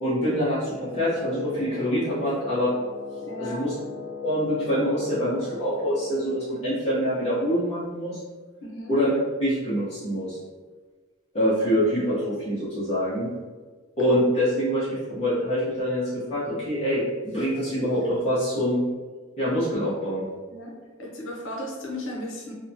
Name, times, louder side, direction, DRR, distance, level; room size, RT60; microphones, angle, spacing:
voice 1, 0.0-2.7 3.4-3.7 4.2-8.2 8.9-10.4 11.3-13.3 14.0-18.8 19.4-20.3, equal, 35° left, -11 dB, 0.7 m, -25 dB
Wind instrument woodwind instrument, 0.9-6.6, left 4 dB, 30° right, 0.5 m, -38 dB
voice 2, 3.2-3.7 8.6-8.9 20.5-20.7 21.0-22.5, left 1 dB, 85° left, -1 dB, 0.6 m, -35 dB
2.8 x 2.2 x 2.6 m, 1.4 s
head